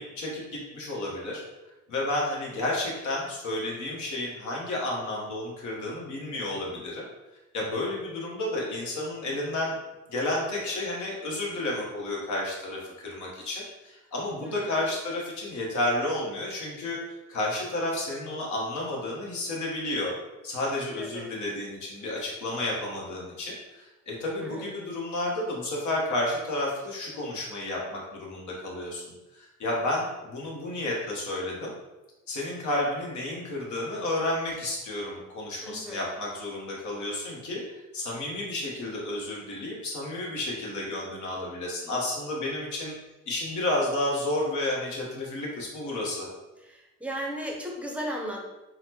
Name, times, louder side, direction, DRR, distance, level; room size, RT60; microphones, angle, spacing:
voice 1, 0.0-1.4 1.9-7.0 7.5-9.8 10.1-17.0 17.3-20.1 20.4-29.0 29.3-31.7 32.3-37.6 37.9-42.9 43.3-46.3, left 1 dB, 70° left, -3 dB, 1.1 m, -31 dB
voice 2, 14.4-14.8 21.0-21.3 24.4-24.8 35.6-36.1 46.6-48.4, equal, 5° right, 0 dB, 0.6 m, -36 dB
4.0 x 2.1 x 2.8 m, 1.0 s
cardioid pair, 90°, 30 cm